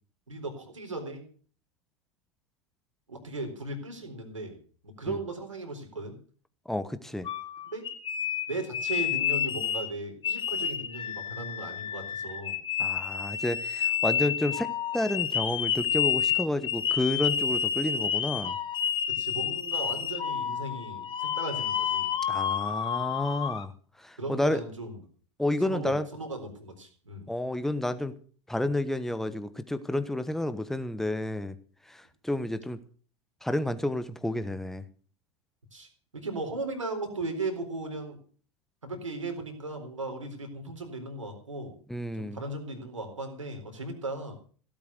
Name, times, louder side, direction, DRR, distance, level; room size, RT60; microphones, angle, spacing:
voice 1, 0.3-1.3 3.1-4.6 4.8-6.2 7.7-7.9 8.5-12.6 19.1-22.1 24.2-25.0 25.6-27.3 35.7-38.2 38.8-41.8 42.1-44.3, right 2 dB, 90° right, 5 dB, 4.1 m, -37 dB
voice 2, 6.7-7.3 12.8-18.6 22.3-23.7 24.0-24.6 25.4-26.1 27.3-28.1 28.5-31.6 31.9-32.8 33.4-34.8 41.9-42.4, left 1 dB, ahead, 11 dB, 1.3 m, -30 dB
sound 1, 7.3-9.9 10.2-23.6, left 8 dB, 30° left, 1.6 m, -30 dB
16.5 x 8.8 x 6.5 m, 0.43 s
hypercardioid pair, 85°, 16 cm